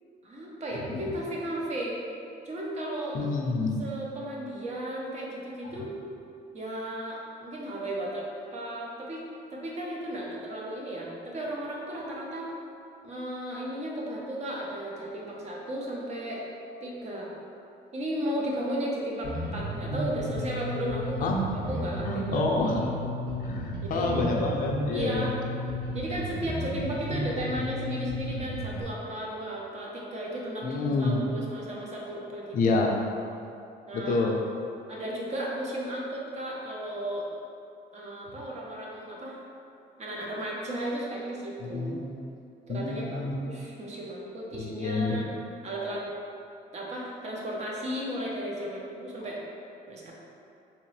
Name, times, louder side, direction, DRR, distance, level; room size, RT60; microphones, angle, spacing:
voice 1, 0.2-2.0 2.4-3.2 3.8-6.0 6.5-9.2 9.5-12.5 13.0-16.4 16.8-17.3 17.9-21.3 21.7-22.8 23.8-24.3 24.9-25.4 25.9-32.6 33.9-34.2 34.9-37.3 37.9-39.4 40.0-41.9 42.7-45.3 45.6-46.0 46.7-49.4 49.9-50.1, right 1 dB, 40° right, -3 dB, 0.8 m, -34 dB
voice 2, 3.1-3.8 21.2-21.4 22.0-22.8 23.4-25.3 30.6-31.2 32.5-33.0 33.9-34.4 41.6-42.0 42.7-43.3 44.6-45.2, left 3 dB, 55° left, 0 dB, 0.5 m, -28 dB
Bass guitar, 19.2-28.8, equal, 25° right, 1.3 m, -33 dB
3.6 x 3.0 x 3.2 m, 2.6 s
cardioid pair, 110°, 17 cm